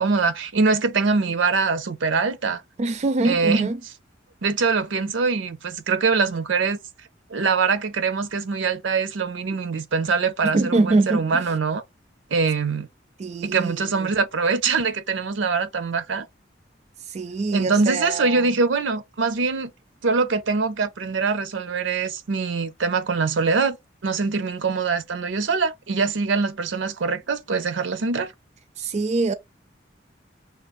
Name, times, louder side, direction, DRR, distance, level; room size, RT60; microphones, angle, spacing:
voice 1, 0.0-2.6 3.2-3.7 4.4-6.8 7.3-11.8 12.3-12.9 13.4-16.3 17.5-19.7 20.0-23.8 24.0-28.3, right 4 dB, 80° right, 0.6 m, -23 dB
voice 2, 2.8-3.8 9.5-9.6 10.4-11.5 13.2-14.1 17.1-18.5 28.8-29.3, right 3 dB, 40° right, 0.4 m, -24 dB
6.4 x 2.4 x 2.4 m
head